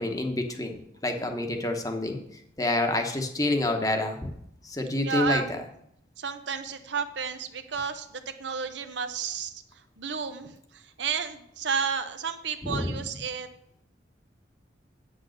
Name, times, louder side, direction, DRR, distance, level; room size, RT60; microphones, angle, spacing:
voice 1, 0.0-2.2 2.6-4.3 4.6-5.6 12.6-12.9, left 2 dB, 20° left, 4 dB, 1.0 m, -28 dB
voice 2, 5.0-5.5 6.2-9.6 10.0-13.5, right 6 dB, 85° right, 8 dB, 0.8 m, -32 dB
8.7 x 6.3 x 6.5 m, 0.74 s
head